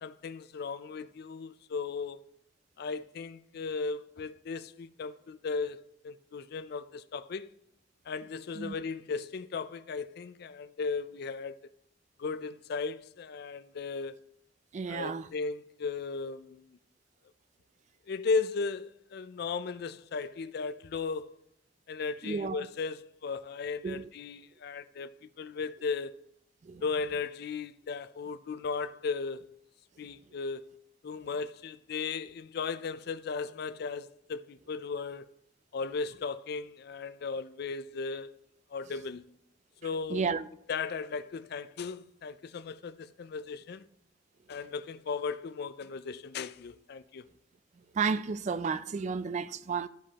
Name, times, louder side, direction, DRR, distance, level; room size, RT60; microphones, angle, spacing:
voice 1, 0.0-2.2 2.8-7.5 8.1-11.6 12.2-14.2 14.9-16.6 18.1-21.4 21.9-26.1 26.8-29.5 30.0-30.7 31.0-35.3 35.7-38.3 38.7-39.3 39.8-40.3 40.7-43.9 44.5-47.3, left 4 dB, 55° left, 0.4 m, -36 dB
voice 2, 14.7-15.3 22.2-22.7 23.8-24.1 26.6-26.8 40.1-40.5 47.9-49.9, right 5 dB, 40° right, 0.3 m, -32 dB
12.5 x 5.2 x 2.8 m
head